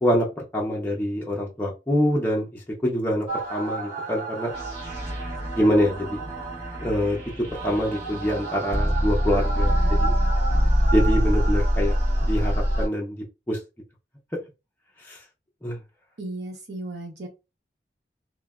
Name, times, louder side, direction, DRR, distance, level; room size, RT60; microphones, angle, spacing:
voice 1, 0.0-4.5 5.5-6.2 6.8-10.1 10.9-12.0 12.3-13.6 15.0-15.2 15.6-15.8, equal, 10° left, -3 dB, 0.5 m, -25 dB
sound 1, 3.3-12.9, equal, 30° right, 1.3 m, -24 dB
voice 2, 9.5-10.3 16.2-17.3, right 2 dB, 75° right, 0 dB, 0.9 m, -36 dB
3.0 x 2.1 x 2.3 m, 0.27 s
head